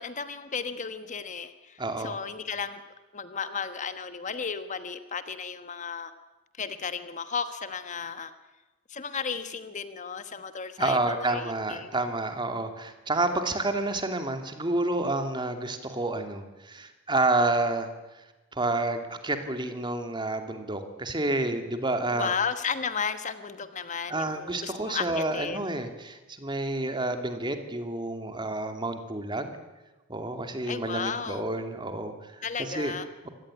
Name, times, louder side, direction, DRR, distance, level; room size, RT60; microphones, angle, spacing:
voice 1, 0.0-2.8 3.1-6.1 6.6-8.3 8.9-11.9 22.1-25.6 30.7-31.6 32.4-33.1, left 6 dB, 40° left, 11 dB, 1.2 m, -34 dB
voice 2, 1.8-2.2 10.8-17.9 18.5-22.3 24.1-29.6 30.1-32.9, right 2 dB, 25° right, 7 dB, 2.6 m, -29 dB
25.0 x 17.5 x 10.0 m, 1.1 s
head